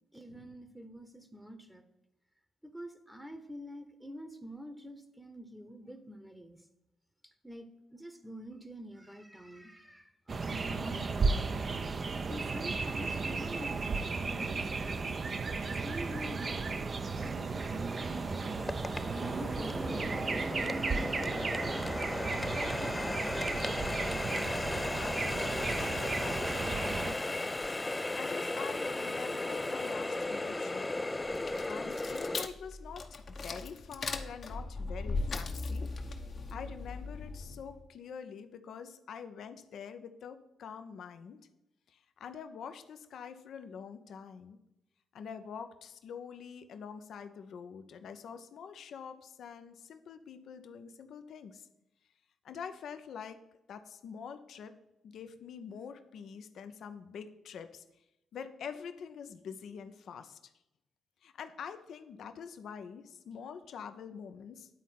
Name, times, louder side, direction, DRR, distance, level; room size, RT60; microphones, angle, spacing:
voice 1, 0.1-1.8 2.6-6.6 7.2-15.1 15.8-18.3 18.9-23.9, equal, 5° right, 8 dB, 1.0 m, -47 dB
sound 1, 10.3-27.2, right 4 dB, 45° right, 0.6 m, -34 dB
Water tap faucet, 16.0-16.1 16.7-32.5, left 2 dB, 20° left, 0.3 m, -36 dB
voice 2, 24.8-30.9 31.6-35.9 36.5-41.4 41.9-44.6 45.1-51.7 52.4-53.4 53.7-54.7 55.0-57.8 58.3-60.4 61.2-64.7, left 7 dB, 70° left, 9 dB, 0.6 m, -46 dB
sound 2, 31.2-37.8, left 3 dB, 50° left, 0.9 m, -38 dB
10.0 x 4.1 x 5.7 m, 0.93 s
hypercardioid pair, 45°, 0 cm